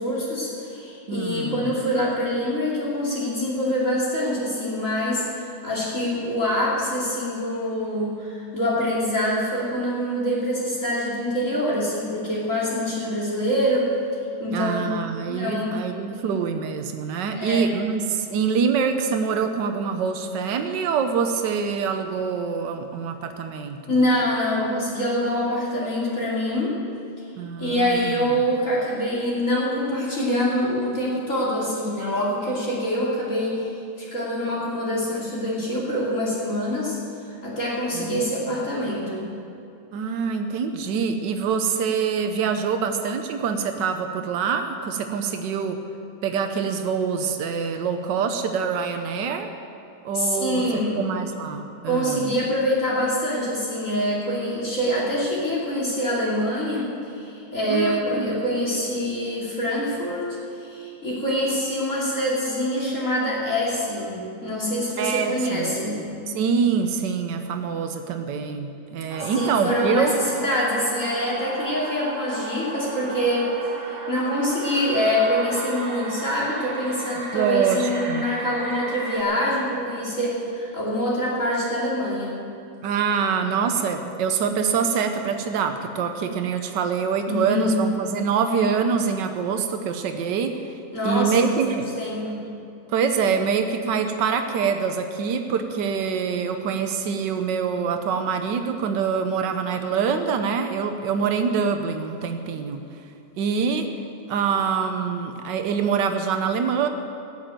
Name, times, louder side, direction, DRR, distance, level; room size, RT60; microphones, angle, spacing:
voice 1, 0.0-13.9 14.4-14.8 15.3-15.7 17.3-17.6 23.9-26.7 27.6-33.7 34.0-37.0 37.4-39.3 50.1-50.9 51.9-56.9 57.1-60.2 60.6-66.0 69.2-70.1 70.4-73.5 73.9-82.3 87.3-87.8 90.9-91.4 92.0-92.4, equal, 45° left, -5 dB, 3.1 m, -25 dB
voice 2, 1.1-1.7 14.5-23.8 27.4-28.4 37.9-38.2 39.9-45.8 46.2-49.5 50.0-52.3 57.7-58.3 65.0-65.8 66.3-70.1 77.3-78.3 82.8-90.7 91.0-91.9 92.9-102.8 103.4-103.9 104.3-106.9, right 6 dB, 85° right, 6 dB, 1.5 m, -25 dB
sound 1, 69.1-79.2, right 2 dB, 55° right, 1.8 m, -35 dB
15.5 x 7.8 x 9.0 m, 2.6 s
omnidirectional pair, 1.9 m